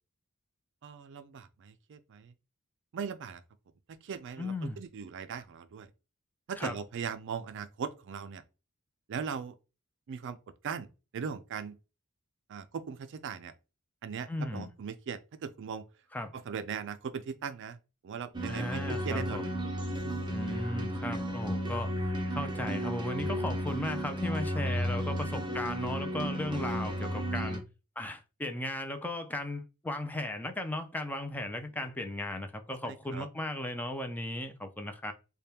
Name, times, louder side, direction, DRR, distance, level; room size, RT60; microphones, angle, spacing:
voice 1, 0.8-2.3 2.9-3.4 3.9-5.9 6.5-8.4 9.1-9.6 10.1-10.4 10.6-10.9 11.1-11.8 12.5-13.5 14.0-15.9 16.3-17.8 18.0-19.4 20.0-20.5 32.9-33.3, right 6 dB, 55° right, 0.4 m, -39 dB
voice 2, 4.4-4.8 6.6-6.8 14.3-14.7 16.1-16.3 18.5-19.5 20.3-21.9 22.3-27.6 28.0-35.1, left 1 dB, 10° left, 0.4 m, -36 dB
sound 1, 18.3-27.6, equal, 20° right, 0.8 m, -33 dB
4.2 x 2.2 x 3.4 m
head